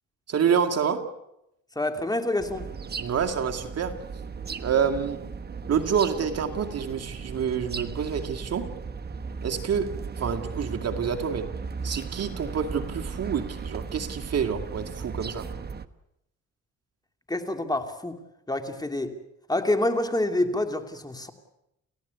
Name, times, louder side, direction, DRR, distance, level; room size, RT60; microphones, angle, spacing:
voice 1, 0.3-1.1 3.0-4.0 4.6-5.2 5.7-8.7 9.4-11.5 11.8-15.5, right 7 dB, 55° right, 5 dB, 2.2 m, -27 dB
voice 2, 1.7-2.7 17.3-18.2 18.5-19.2 19.5-21.3, left 1 dB, 15° left, 6 dB, 2.9 m, -27 dB
sound 1, 2.4-15.9, right 5 dB, 35° right, 1.3 m, -36 dB
30.0 x 16.0 x 8.2 m, 0.85 s
cardioid pair, 90°, 30 cm